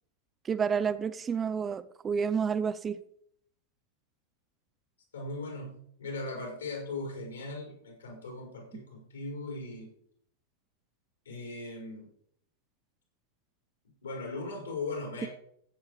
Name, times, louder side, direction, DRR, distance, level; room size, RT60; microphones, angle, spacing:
voice 1, 0.5-3.0, right 6 dB, 20° right, 13 dB, 0.6 m, -29 dB
voice 2, 5.1-9.9 11.3-12.1 14.0-15.3, left 2 dB, 70° left, 0 dB, 5.5 m, -38 dB
15.5 x 8.1 x 5.0 m, 0.68 s
figure-of-eight pair, 90°, 0 cm